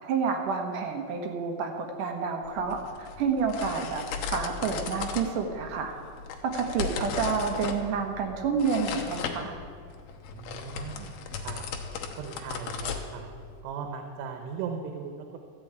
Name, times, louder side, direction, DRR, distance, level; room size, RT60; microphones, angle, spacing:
voice 1, 0.0-4.0 4.3-5.9 6.4-9.5, right 5 dB, 65° right, 3 dB, 2.3 m, -29 dB
sound 1, 2.4-13.6, left 6 dB, 75° left, 2.9 m, -37 dB
voice 2, 10.3-11.6 12.2-13.3 13.6-15.4, right 6 dB, 85° right, 5 dB, 3.1 m, -38 dB
14.5 x 7.0 x 9.3 m, 2.1 s
omnidirectional pair, 4.8 m